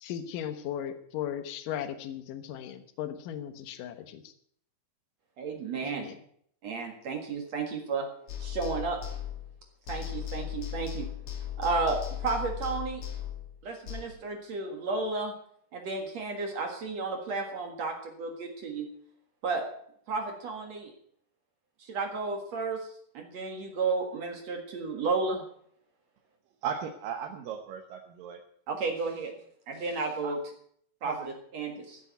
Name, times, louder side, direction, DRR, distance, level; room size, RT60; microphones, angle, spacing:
voice 1, 0.0-4.3 5.8-6.2, left 10 dB, 65° left, 10 dB, 2.5 m, -37 dB
voice 2, 5.4-6.1 6.6-8.1 8.4-9.0 9.9-11.1 11.6-13.0 13.6-15.3 15.7-18.9 19.4-19.7 20.1-20.9 21.8-22.9 23.1-25.4 28.7-29.3 29.7-30.4 31.0-32.0, right 4 dB, 50° right, 3 dB, 2.4 m, -32 dB
sound 1, 8.3-9.6 9.9-14.0, left 11 dB, 40° left, 2.9 m, -37 dB
voice 3, 26.6-28.4 30.2-30.4 31.1-31.3, right 7 dB, 70° right, 4 dB, 2.5 m, -36 dB
14.5 x 8.4 x 8.2 m, 0.65 s
omnidirectional pair, 4.6 m